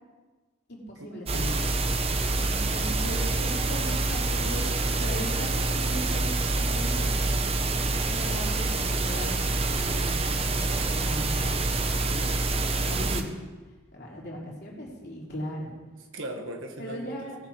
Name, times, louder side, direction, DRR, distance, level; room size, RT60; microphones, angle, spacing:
voice 1, 0.7-1.6 2.5-4.6 5.0-7.2 7.8-11.6 12.8-13.3 13.9-15.7 16.8-17.4, equal, 50° left, -3 dB, 3.2 m, -38 dB
sound 1, 1.3-13.2, right 2 dB, 30° right, 0.7 m, -26 dB
voice 2, 12.0-13.0 16.1-17.1, right 1 dB, 70° right, 3 dB, 1.6 m, -39 dB
18.5 x 6.8 x 4.7 m, 1.3 s
head